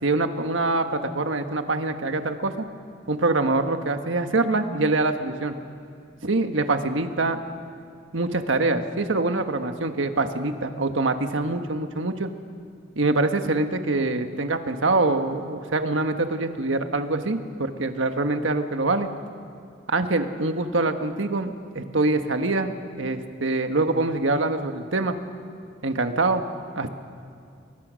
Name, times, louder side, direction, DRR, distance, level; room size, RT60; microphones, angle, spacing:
voice 1, 0.0-2.6 3.1-5.5 6.2-7.4 8.1-12.3 12.9-19.1 19.9-25.2 25.8-26.4 26.7-26.9, right 2 dB, 85° right, 7 dB, 1.5 m, -24 dB
29.5 x 22.0 x 6.4 m, 2.4 s
head